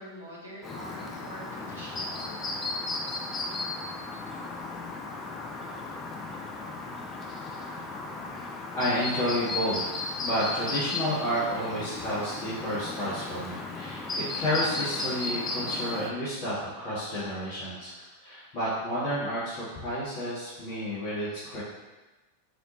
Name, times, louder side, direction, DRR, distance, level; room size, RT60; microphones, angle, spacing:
voice 1, 0.0-2.4, equal, 80° left, -6 dB, 1.2 m, -44 dB
Chirp tweet, 0.6-16.1, left 3 dB, 20° left, 0.4 m, -35 dB
voice 2, 8.7-9.9 10.2-17.9 18.2-21.6, equal, 40° left, -12 dB, 1.2 m, -31 dB
4.0 x 2.8 x 2.9 m, 1.2 s
figure-of-eight pair, 90°, 0 cm